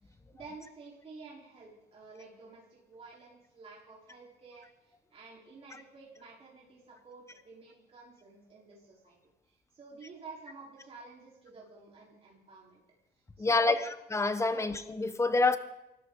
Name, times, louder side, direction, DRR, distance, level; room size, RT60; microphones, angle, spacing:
voice 1, 0.0-9.2 9.4-12.8 13.4-13.8 14.5-14.7, right 3 dB, 35° right, -4 dB, 4.1 m, -51 dB
voice 2, 13.4-13.8 14.1-15.6, left 3 dB, 15° left, 11 dB, 1.2 m, -27 dB
23.5 x 13.5 x 3.9 m, 0.92 s
cardioid pair, 110°, 17 cm